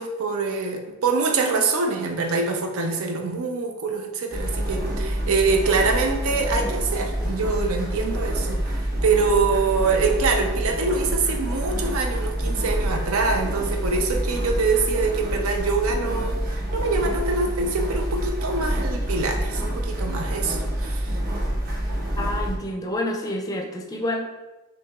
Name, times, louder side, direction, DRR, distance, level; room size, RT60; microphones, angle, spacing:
voice 1, 0.0-21.2, right 4 dB, 90° right, 4 dB, 0.6 m, -24 dB
sound 1, 4.3-22.6, right 1 dB, 45° right, 0.9 m, -27 dB
voice 2, 22.2-24.2, left 1 dB, 15° left, 2 dB, 0.4 m, -28 dB
5.9 x 2.8 x 2.3 m, 1.1 s
head